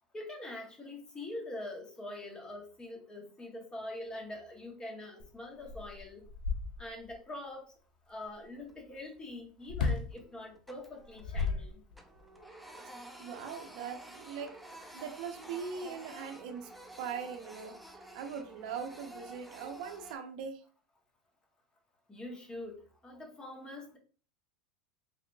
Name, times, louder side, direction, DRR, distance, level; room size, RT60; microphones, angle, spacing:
voice 1, 0.1-6.3 6.8-7.7 8.1-11.8 22.1-24.0, left 1 dB, 20° left, 1.3 m, -44 dB
sound 1, 5.2-5.3 5.6-7.1 9.7-10.1 11.0-12.2, left 4 dB, 85° left, 0.7 m, -34 dB
Printer, 8.6-9.2 9.5-9.7 10.1-11.7 11.9-20.2, right 1 dB, ahead, 0.7 m, -51 dB
voice 2, 13.2-14.6 14.9-16.7 17.0-20.6, right 6 dB, 70° right, 0.6 m, -41 dB
3.6 x 3.3 x 2.3 m
hypercardioid pair, 95°, 4 cm